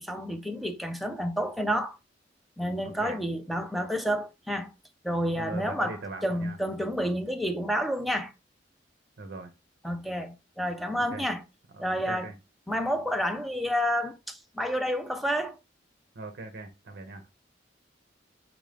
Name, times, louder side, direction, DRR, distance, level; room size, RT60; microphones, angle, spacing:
voice 1, 0.0-2.0 2.6-4.7 5.0-8.3 9.8-11.4 11.8-12.3 12.7-15.6, equal, ahead, 0.5 m, -30 dB
voice 2, 2.8-3.2 5.3-6.6 9.2-9.5 11.1-11.2 11.7-12.3 16.2-17.3, right 3 dB, 60° right, 0.6 m, -40 dB
6.0 x 2.6 x 3.3 m
head